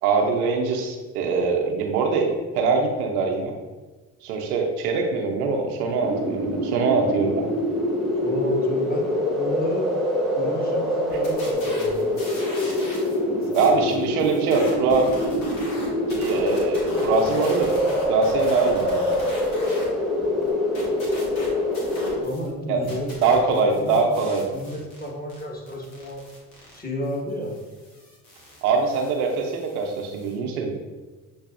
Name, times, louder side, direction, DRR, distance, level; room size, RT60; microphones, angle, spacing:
voice 1, 0.0-3.5 4.2-7.5 13.5-15.1 16.1-17.7 18.1-19.1 22.7-22.9 23.2-24.5 28.6-30.8, right 4 dB, 85° right, 2 dB, 0.7 m, -23 dB
sound 1, 6.0-22.2, left 1 dB, ahead, 1.1 m, -25 dB
voice 2, 8.2-9.1 9.4-9.9 10.3-12.0 13.2-13.9 22.2-24.1 24.5-26.2 26.7-27.5, left 1 dB, 20° left, -2 dB, 1.5 m, -32 dB
sound 2, 11.1-13.2 13.4-19.9 20.2-22.5 22.8-30.3, left 1 dB, 90° left, 1.2 m, -39 dB
6.8 x 2.6 x 2.5 m, 1.3 s
hypercardioid pair, 55°, 43 cm